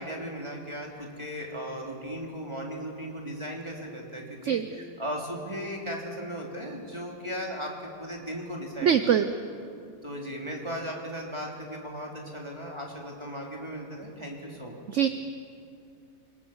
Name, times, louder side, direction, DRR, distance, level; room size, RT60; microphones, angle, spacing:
voice 1, 0.0-9.4 10.0-14.8, equal, 15° right, -2 dB, 3.2 m, -37 dB
voice 2, 8.8-9.3 14.9-15.1, right 8 dB, 55° right, 10 dB, 0.9 m, -22 dB
27.0 x 20.0 x 7.2 m, 2.4 s
omnidirectional pair, 1.8 m